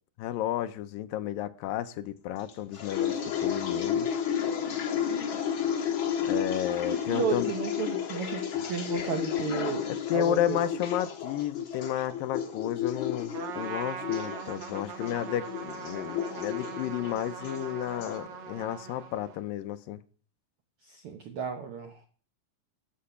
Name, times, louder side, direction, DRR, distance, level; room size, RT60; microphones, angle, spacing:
voice 1, 0.2-3.1 3.4-4.1 6.3-7.5 9.9-20.0, left 11 dB, 85° left, 10 dB, 2.3 m, -32 dB
sound 1, 2.5-18.2, left 8 dB, 55° left, 1.4 m, -32 dB
voice 2, 6.7-10.6 20.8-22.1, right 7 dB, 90° right, 5 dB, 1.2 m, -34 dB
Trumpet, 13.3-19.5, right 6 dB, 60° right, 2.4 m, -41 dB
13.5 x 5.7 x 5.6 m, 0.44 s
omnidirectional pair, 4.0 m